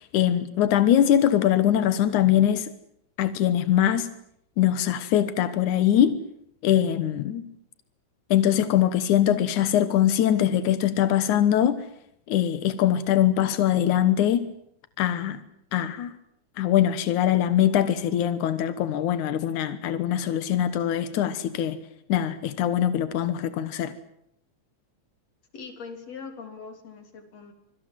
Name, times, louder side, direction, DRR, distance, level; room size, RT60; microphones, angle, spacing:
voice 1, 0.1-2.7 3.2-4.1 4.6-6.2 6.6-7.4 8.3-11.8 12.3-14.5 15.0-15.4 15.7-16.1 16.6-21.8 22.1-23.9, left 11 dB, 85° left, 2.7 m, -22 dB
voice 2, 25.5-27.5, left 5 dB, 60° left, 4.5 m, -41 dB
26.0 x 24.5 x 7.6 m
omnidirectional pair, 3.4 m